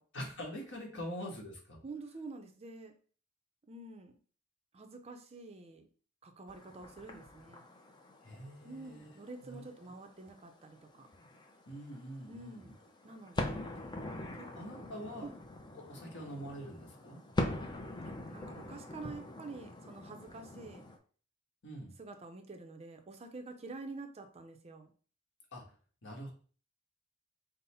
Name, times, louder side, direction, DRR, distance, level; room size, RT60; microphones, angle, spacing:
voice 1, 0.1-1.8 8.2-9.6 11.7-12.7 14.6-15.3 15.7-17.2 21.6-21.9 25.5-25.6 26.0-26.3, equal, 60° left, 0 dB, 1.3 m, -44 dB
voice 2, 1.8-2.9 3.7-4.1 4.7-5.9 6.2-7.7 8.6-11.1 12.3-12.7 13.0-13.6 14.3-14.5 14.8-14.9 15.2-15.3 18.0-20.8 22.0-24.9, right 3 dB, 30° right, 5 dB, 0.5 m, -48 dB
sound 1, 6.5-21.0, left 1 dB, 20° left, 0.5 m, -43 dB
5.4 x 2.0 x 4.2 m, 0.41 s
head